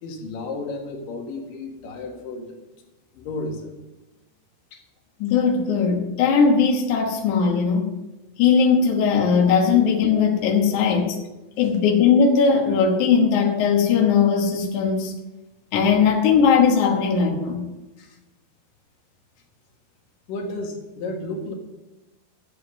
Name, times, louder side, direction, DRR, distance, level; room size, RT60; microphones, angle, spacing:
voice 1, 0.0-2.5 3.1-3.7 4.7-4.8 18.0-18.2 20.3-21.5, left 2 dB, 60° left, 1 dB, 2.7 m, -32 dB
voice 2, 5.2-7.9 8.4-11.2 11.6-15.1 15.7-17.6, left 6 dB, 80° left, 1 dB, 1.7 m, -19 dB
12.0 x 7.9 x 6.4 m, 1.0 s
omnidirectional pair, 5.5 m